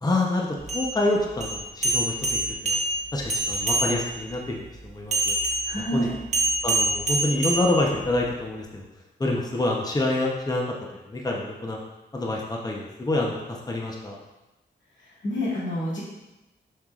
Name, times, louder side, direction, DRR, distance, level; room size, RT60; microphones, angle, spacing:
voice 1, 0.0-2.8 3.1-5.4 5.8-6.1 6.6-8.8 9.2-10.6 11.1-11.8 12.1-14.2, left 2 dB, 20° left, -1 dB, 0.8 m, -27 dB
sound 1, 0.6-4.3 5.1-8.3, right 2 dB, 40° right, 1.3 m, -26 dB
voice 2, 5.6-6.2 15.0-16.0, equal, 90° left, -8 dB, 2.3 m, -28 dB
7.0 x 6.5 x 2.5 m, 1.0 s
wide cardioid pair, 115°, 19 cm